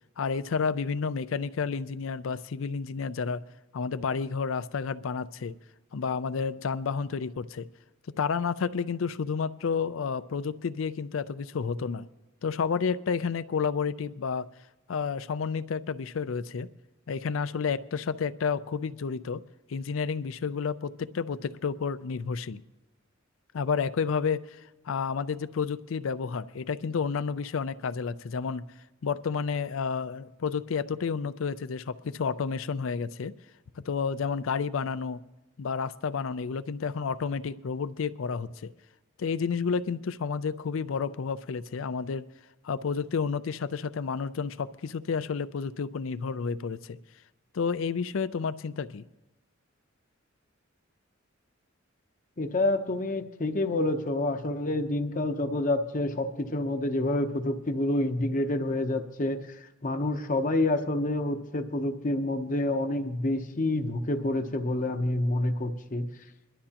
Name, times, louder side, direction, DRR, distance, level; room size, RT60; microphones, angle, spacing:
voice 1, 0.2-3.4 3.7-5.6 5.9-7.7 8.2-12.1 12.4-14.5 14.9-16.7 17.1-19.4 19.7-22.6 23.5-24.6 24.9-28.6 29.0-33.3 33.9-35.2 35.6-38.7 39.2-42.2 42.6-47.0 47.5-49.0, left 5 dB, 75° left, 15 dB, 0.4 m, -30 dB
voice 2, 52.4-59.4 59.8-66.1, left 1 dB, 40° left, 7 dB, 0.8 m, -28 dB
22.0 x 12.0 x 2.9 m, 1.0 s
head